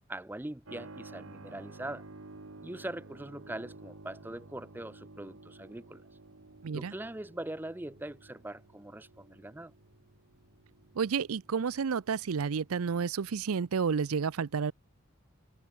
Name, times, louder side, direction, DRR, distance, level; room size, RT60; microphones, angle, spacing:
voice 1, 0.1-2.0 2.6-6.0 6.7-9.7, right 1 dB, 10° right, 0.5 m, -41 dB
Keyboard (musical), 0.6-13.1, right 2 dB, 70° right, 1.4 m, -52 dB
voice 2, 6.6-6.9 11.0-14.7, right 6 dB, 85° right, 0.5 m, -30 dB
head